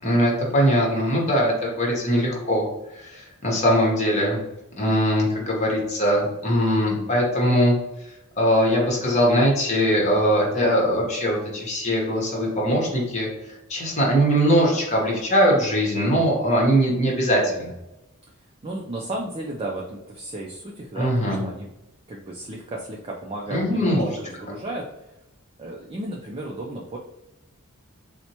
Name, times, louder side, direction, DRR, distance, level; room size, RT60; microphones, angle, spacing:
voice 1, 0.0-2.7 3.0-4.4 4.8-7.7 8.4-13.3 13.7-17.7 21.0-21.4 23.5-24.1, equal, 30° left, -2 dB, 1.0 m, -21 dB
voice 2, 18.6-21.7 22.1-24.9 25.6-27.0, right 1 dB, 25° right, -1 dB, 0.3 m, -34 dB
4.2 x 2.1 x 2.8 m, 0.93 s
head